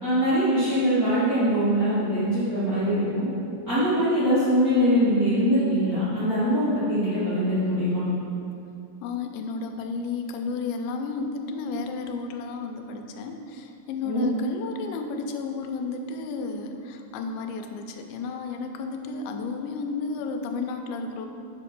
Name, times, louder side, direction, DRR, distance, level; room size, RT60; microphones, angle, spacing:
voice 1, 0.0-3.3 3.7-8.1 14.0-14.2, equal, 55° right, -13 dB, 0.9 m, -23 dB
voice 2, 9.0-21.3, left 4 dB, 85° left, 5 dB, 2.4 m, -32 dB
5.3 x 5.1 x 5.8 m, 2.6 s
omnidirectional pair, 4.1 m